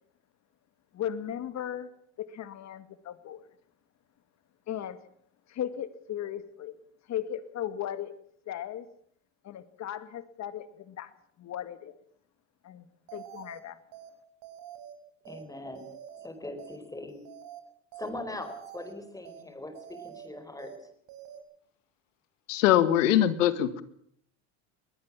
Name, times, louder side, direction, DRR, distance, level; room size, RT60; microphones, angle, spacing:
voice 1, 0.9-1.9 2.2-3.4 4.7-5.0 5.5-6.8 7.1-8.1 8.5-8.9 9.4-11.1 11.4-12.0 12.6-12.9 13.1-13.8, left 10 dB, 45° left, 12 dB, 2.3 m, -36 dB
sound 1, 13.1-13.6 13.9-14.1 14.4-14.9 15.2-15.4 15.7-16.3 16.6-16.8 17.1-17.6 17.9-18.1 18.4-18.9 19.2-19.4 19.7-20.3 20.6-20.8 21.1-21.4, right 10 dB, 65° right, 6.5 m, -46 dB
voice 2, 15.2-15.9 16.2-17.1 18.0-20.9, left 2 dB, 10° left, 9 dB, 4.8 m, -41 dB
voice 3, 22.5-23.8, left 12 dB, 90° left, 13 dB, 1.9 m, -22 dB
22.0 x 18.5 x 7.5 m, 0.64 s
supercardioid pair, 100°, 38 cm